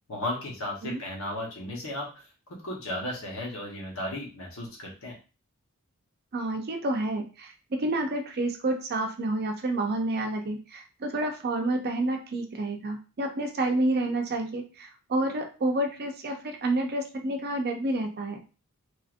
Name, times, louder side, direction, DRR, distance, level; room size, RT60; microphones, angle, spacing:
voice 1, 0.1-2.2 2.5-5.2, left 1 dB, 65° left, -1 dB, 1.0 m, -35 dB
voice 2, 6.3-18.4, right 2 dB, 45° right, 3 dB, 0.5 m, -29 dB
3.1 x 2.6 x 2.5 m, 0.34 s
head